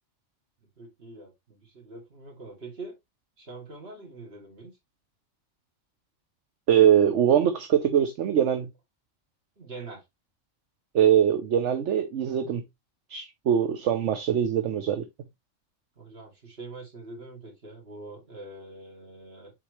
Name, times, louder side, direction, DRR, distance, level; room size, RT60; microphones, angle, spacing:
voice 1, 0.8-2.9 3.4-4.7 9.6-10.0 16.0-19.5, right 3 dB, 55° right, 2.8 m, -44 dB
voice 2, 6.7-8.7 10.9-12.6 13.1-15.0, right 9 dB, 75° right, 1.1 m, -22 dB
7.6 x 4.4 x 3.1 m
omnidirectional pair, 1.3 m